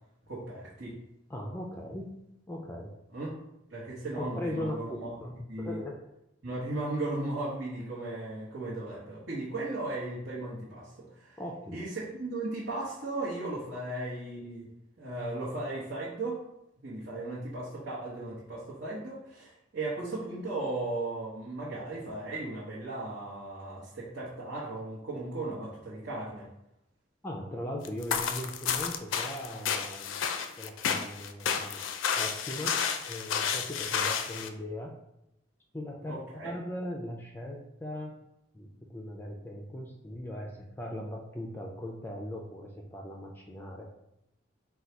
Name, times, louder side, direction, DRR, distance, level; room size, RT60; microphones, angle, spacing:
voice 1, 0.3-1.0 3.1-3.4 3.7-5.1 5.5-5.8 6.4-11.4 11.7-14.7 15.0-16.4 16.8-26.5 36.1-36.5, right 2 dB, 70° right, -9 dB, 1.0 m, -36 dB
voice 2, 1.3-2.1 2.5-2.9 4.1-5.3 5.6-6.0 11.4-11.8 13.9-14.0 17.6-17.8 27.2-30.3 30.6-31.8 32.2-34.9 35.7-38.2 38.5-43.9, left 1 dB, 10° left, 0 dB, 0.4 m, -39 dB
sound 1, 27.9-34.5, left 7 dB, 90° left, 0.4 m, -31 dB
3.9 x 2.3 x 4.4 m, 0.84 s
head